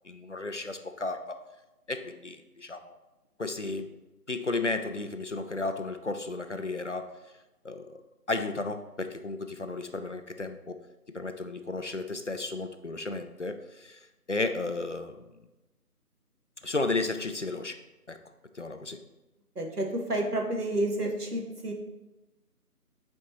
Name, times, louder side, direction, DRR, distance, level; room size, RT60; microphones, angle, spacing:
voice 1, 0.0-1.4 1.9-3.0 3.4-4.0 4.3-7.1 7.6-8.0 8.3-10.8 11.1-15.2 16.6-17.8 18.1-18.2 18.5-19.0, left 3 dB, 50° left, 8 dB, 0.5 m, -33 dB
voice 2, 19.5-21.7, right 1 dB, 80° right, 2 dB, 1.5 m, -30 dB
8.4 x 4.5 x 3.0 m, 1.0 s
figure-of-eight pair, 160°, 46 cm